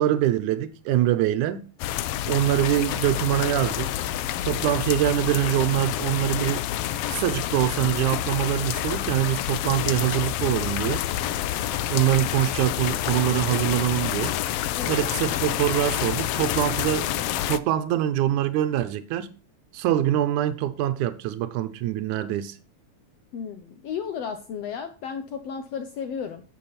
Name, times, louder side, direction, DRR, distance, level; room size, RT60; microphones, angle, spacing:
voice 1, 0.0-1.6 2.3-3.9 4.4-6.6 7.1-11.0 11.9-14.4 14.9-19.3 19.7-22.6, right 12 dB, 85° right, 2.3 m, -24 dB
sound 1, 1.8-17.6, left 12 dB, 90° left, 1.3 m, -28 dB
voice 2, 23.3-26.4, left 7 dB, 65° left, 1.9 m, -33 dB
12.0 x 7.7 x 4.2 m
omnidirectional pair, 3.4 m